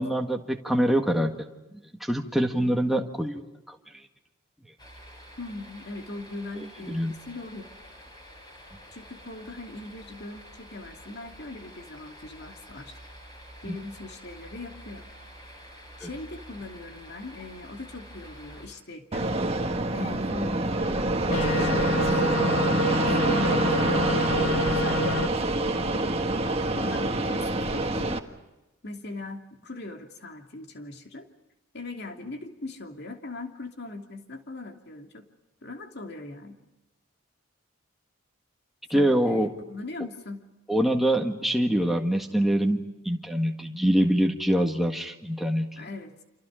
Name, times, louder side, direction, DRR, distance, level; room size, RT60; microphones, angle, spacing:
voice 1, 0.0-1.3 2.0-3.4 3.7-3.8 6.9-7.2 13.7-13.8 16.0-16.1 38.9-39.5 40.7-45.9, equal, ahead, 3 dB, 1.8 m, -24 dB
sound 1, 4.8-18.7, equal, 20° left, 6.9 m, -48 dB
voice 2, 5.4-7.7 8.9-13.0 13.6-15.1 16.0-19.3 19.9-21.1 21.4-28.2 28.8-31.3 31.7-35.3 35.6-36.6 38.9-40.4 45.8-46.1, left 2 dB, 50° left, 4 dB, 2.7 m, -40 dB
Fixed-wing aircraft airplane, 19.1-28.2, right 2 dB, 30° right, 1.6 m, -26 dB
sound 2, 21.3-25.3, left 2 dB, 85° left, 2.4 m, -28 dB
29.5 x 27.5 x 5.1 m, 1.0 s
head